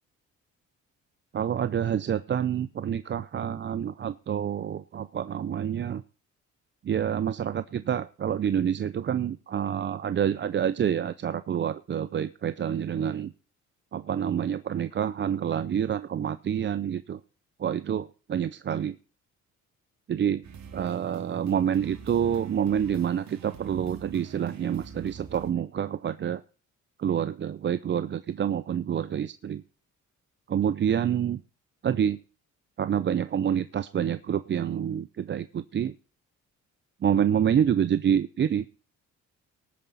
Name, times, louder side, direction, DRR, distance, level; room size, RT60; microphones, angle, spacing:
voice 1, 1.3-6.0 6.8-13.3 13.9-17.2 17.6-19.0 20.1-20.4 20.7-26.4 27.0-29.6 30.5-31.4 31.8-32.2 32.8-36.0 37.0-38.6, right 9 dB, 40° right, 13 dB, 0.5 m, -27 dB
sound 1, 20.4-25.5, right 6 dB, 65° right, 2.3 m, -46 dB
18.5 x 9.3 x 4.1 m, 0.37 s
cardioid pair, 90°, 30 cm